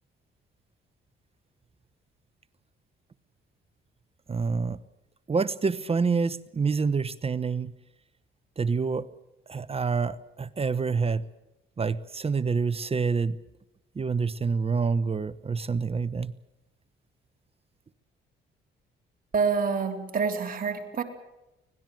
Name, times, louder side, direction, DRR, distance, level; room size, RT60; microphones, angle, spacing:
voice 1, 4.3-4.8 5.3-7.7 8.6-9.0 9.5-11.2 11.8-13.4 14.0-16.3, right 5 dB, 30° right, 15 dB, 1.0 m, -27 dB
voice 2, 19.3-21.0, right 5 dB, 45° right, 3 dB, 3.5 m, -27 dB
25.0 x 18.5 x 7.6 m, 0.94 s
cardioid pair, 90°, 20 cm